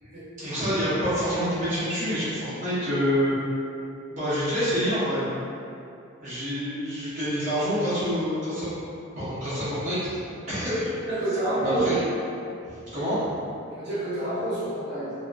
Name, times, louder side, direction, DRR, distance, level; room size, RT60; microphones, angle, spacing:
voice 1, 0.4-3.3 4.1-5.3 6.2-8.7 9.1-10.2 10.5-10.9 11.6-12.0 12.7-13.2, equal, 40° right, -13 dB, 1.1 m, -27 dB
voice 2, 11.1-11.8 13.6-15.1, right 1 dB, 55° right, -11 dB, 1.2 m, -28 dB
2.8 x 2.8 x 2.4 m, 2.6 s
head